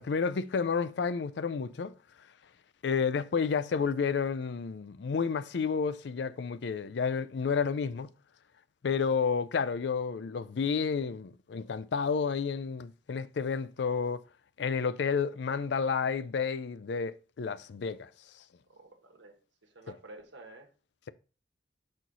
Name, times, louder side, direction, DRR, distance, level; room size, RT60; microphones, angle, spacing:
voice 1, 0.0-1.9 2.8-8.1 8.8-14.2 14.6-18.1, left 5 dB, 70° left, 0.4 m, -30 dB
voice 2, 18.7-20.7, right 2 dB, 85° right, 1.2 m, -51 dB
6.1 x 4.4 x 3.9 m
head